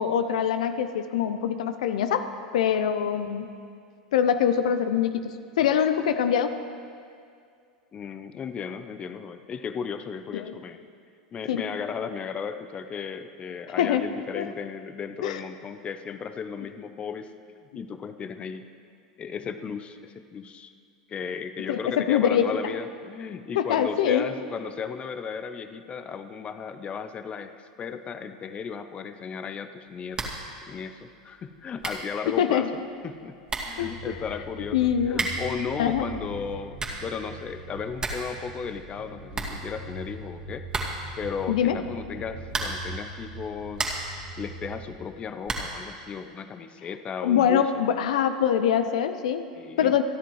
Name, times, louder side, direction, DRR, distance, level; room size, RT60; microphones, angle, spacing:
voice 1, 0.0-3.5 4.1-6.6 10.3-10.5 11.5-11.6 13.8-14.0 14.4-14.5 15.2-15.4 21.7-22.5 23.6-24.3 32.3-32.7 33.8-34.2 34.7-35.2 35.8-36.1 41.5-41.8 47.2-49.5 49.8-50.0, left 9 dB, 70° left, 10 dB, 0.6 m, -24 dB
voice 2, 7.9-10.8 11.3-17.3 17.7-18.6 19.2-20.7 21.1-33.4 33.6-40.6 41.2-43.9 44.4-48.0 49.5-49.9, left 6 dB, 30° left, 10 dB, 0.7 m, -35 dB
sound 1, 30.1-30.5 30.8-30.9 31.5-31.6 31.8-32.1 33.1-33.2 33.5-33.8 35.1-35.6 36.5-37.1 37.5-37.6 37.8-38.3 38.6-38.7 39.0-39.1 39.3-40.1 40.7-41.2 42.5-43.0 43.4-44.2 45.4-45.8, right 3 dB, 20° right, 2.2 m, -32 dB
sound 2, 33.8-45.0, right 2 dB, 90° right, 1.8 m, -42 dB
28.0 x 10.0 x 3.2 m, 2.3 s
hypercardioid pair, 90°, 4 cm